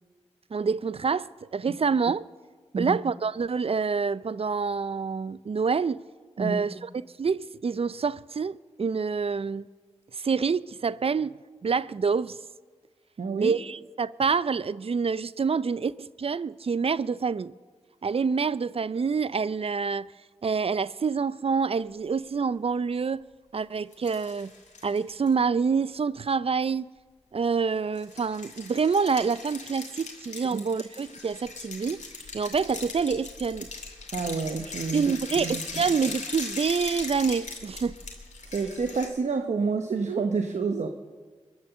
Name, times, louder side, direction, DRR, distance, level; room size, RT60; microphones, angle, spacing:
voice 1, 0.5-2.2 2.8-6.0 6.4-6.9 7.2-9.6 10.2-11.3 11.6-12.4 13.4-17.5 18.0-20.1 20.4-23.2 23.5-24.5 24.8-26.8 27.3-32.0 32.3-33.7 34.9-38.0, right 5 dB, 55° right, 0.5 m, -27 dB
voice 2, 13.2-13.6 30.5-30.6 34.1-35.1 35.4-35.8 38.5-40.9, right 4 dB, 75° right, 0.9 m, -29 dB
sound 1, 23.9-25.3 27.9-39.1, left 4 dB, 85° left, 2.5 m, -39 dB
22.5 x 9.6 x 6.8 m
cardioid pair, 50°, 12 cm